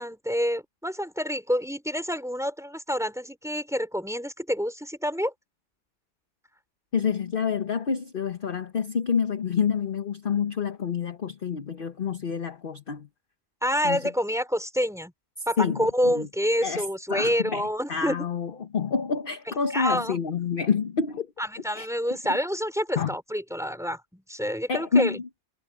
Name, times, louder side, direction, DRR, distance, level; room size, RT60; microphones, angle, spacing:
voice 1, 0.0-5.3 13.6-15.1 15.5-18.2 19.7-20.2 21.4-25.2, equal, ahead, 4.6 m, -28 dB
voice 2, 6.9-13.1 13.8-14.1 15.6-16.3 16.6-21.3 21.7-21.9 23.0-23.1 24.7-25.2, left 6 dB, 40° left, 1.1 m, -28 dB
omnidirectional pair, 1.5 m